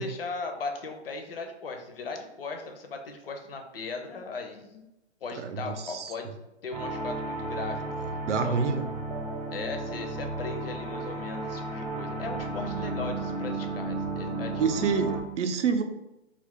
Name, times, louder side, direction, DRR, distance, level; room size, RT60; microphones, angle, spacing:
voice 1, 0.0-4.8 5.2-6.3 6.6-7.9 8.3-8.7 9.5-14.8, left 4 dB, 55° left, 4 dB, 0.5 m, -38 dB
voice 2, 5.4-6.1 8.2-8.8 14.6-15.8, right 5 dB, 75° right, 7 dB, 0.5 m, -27 dB
sound 1, 6.7-15.2, right 2 dB, 40° right, 0.8 m, -33 dB
2.5 x 2.4 x 3.6 m, 0.94 s
hypercardioid pair, 170°, 36 cm